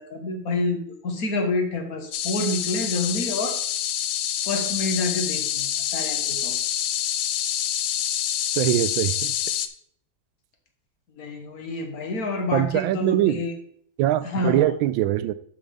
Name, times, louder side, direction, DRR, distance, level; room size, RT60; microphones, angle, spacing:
voice 1, 0.0-3.6 4.5-6.6 11.2-13.5 14.2-14.7, left 2 dB, 50° left, 1.7 m, -28 dB
sound 1, 2.1-9.7, left 11 dB, 70° left, 1.2 m, -27 dB
voice 2, 8.6-9.3 12.5-13.4 14.0-15.3, right 13 dB, 80° right, 1.3 m, -22 dB
11.5 x 6.0 x 3.4 m
omnidirectional pair, 2.2 m